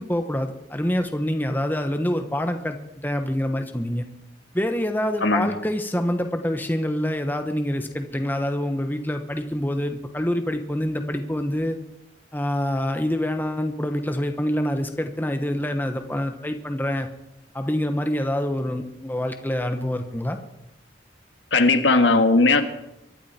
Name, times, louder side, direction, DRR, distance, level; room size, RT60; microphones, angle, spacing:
voice 1, 0.0-2.8 3.0-4.0 4.5-11.8 12.3-17.1 17.5-20.4, left 1 dB, 10° left, 6 dB, 1.1 m, -26 dB
voice 2, 21.5-22.6, left 3 dB, 80° left, 7 dB, 1.7 m, -17 dB
24.0 x 12.5 x 4.4 m, 0.85 s
head